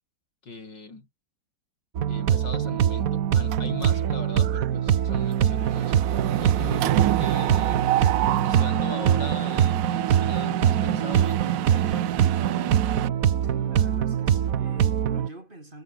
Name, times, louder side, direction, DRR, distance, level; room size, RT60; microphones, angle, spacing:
voice 1, 0.4-1.1 2.1-6.1 6.4-7.9 8.4-12.2, left 3 dB, 80° left, 5.3 m, -39 dB
sound 1, 1.9-15.3, right 9 dB, 55° right, 1.3 m, -23 dB
Mechanisms, 3.5-4.1 4.4-4.7 4.9-13.1, right 15 dB, 85° right, 1.4 m, -28 dB
voice 2, 13.4-15.8, right 1 dB, 25° right, 3.9 m, -43 dB
omnidirectional pair, 1.9 m